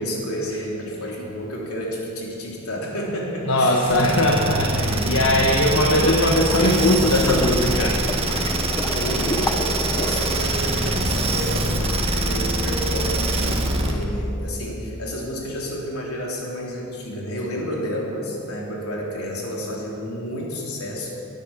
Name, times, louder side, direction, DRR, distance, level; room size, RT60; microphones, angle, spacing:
voice 1, 0.0-4.0 8.9-21.1, equal, 80° left, -2 dB, 3.7 m, -30 dB
voice 2, 3.4-8.0, left 1 dB, 65° left, 0 dB, 1.4 m, -20 dB
sound 1, 3.9-14.0, right 2 dB, 25° right, 1.6 m, -24 dB
sound 2, 5.8-11.1, left 1 dB, 15° left, 0.7 m, -31 dB
18.0 x 10.5 x 7.5 m, 2.7 s
head